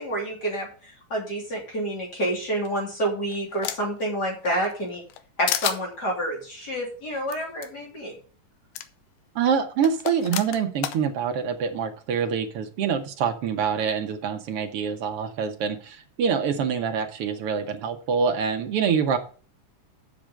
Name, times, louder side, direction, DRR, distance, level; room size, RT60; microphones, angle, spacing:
voice 1, 0.0-5.0 5.4-8.2, right 1 dB, 30° left, -1 dB, 3.3 m, -28 dB
sound 1, 2.7-4.0 4.5-5.2 5.5-5.8 7.3-7.4 7.6-7.7 8.8-8.9 9.8-11.0, left 12 dB, 80° left, 2.3 m, -30 dB
voice 2, 9.3-19.2, right 6 dB, 65° right, 6 dB, 1.5 m, -25 dB
7.4 x 6.7 x 7.5 m, 0.41 s
omnidirectional pair, 3.7 m